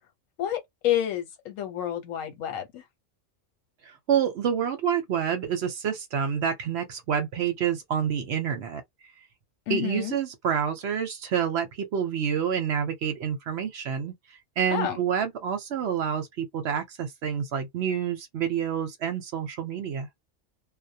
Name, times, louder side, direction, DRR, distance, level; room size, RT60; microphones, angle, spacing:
voice 1, 0.4-2.8 9.7-10.1 14.7-15.0, left 11 dB, 80° left, 1.1 m, -29 dB
voice 2, 3.8-8.8 9.7-14.1 14.6-20.1, right 8 dB, 65° right, 0.8 m, -28 dB
2.1 x 2.1 x 2.7 m
omnidirectional pair, 1.4 m